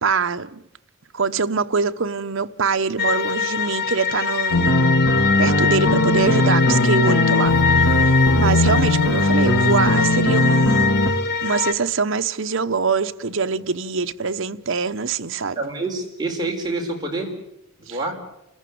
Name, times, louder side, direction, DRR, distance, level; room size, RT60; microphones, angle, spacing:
voice 1, 0.0-0.6 1.1-4.7 5.4-15.6 17.9-18.0, right 4 dB, 65° right, 0.9 m, -24 dB
sound 1, 3.0-11.7, left 5 dB, 50° left, 1.2 m, -23 dB
sound 2, 4.5-11.1, left 1 dB, 75° left, 2.3 m, -18 dB
voice 2, 15.5-17.3 17.8-18.2, right 2 dB, 20° right, 4.9 m, -27 dB
29.5 x 14.5 x 9.3 m
head